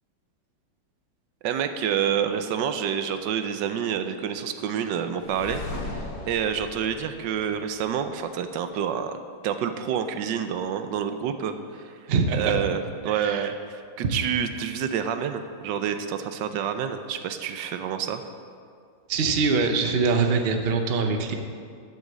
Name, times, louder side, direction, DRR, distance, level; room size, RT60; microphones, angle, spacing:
voice 1, 1.4-9.2 9.4-11.9 12.3-18.2, right 8 dB, 80° right, 9 dB, 1.3 m, -28 dB
sound 1, 5.2-8.2, left 2 dB, 75° left, 1.7 m, -37 dB
voice 2, 12.1-12.6 13.1-13.5 14.0-14.2 19.1-21.3, right 4 dB, 45° right, 5 dB, 0.9 m, -23 dB
12.0 x 6.5 x 7.4 m, 2.2 s
omnidirectional pair, 1.9 m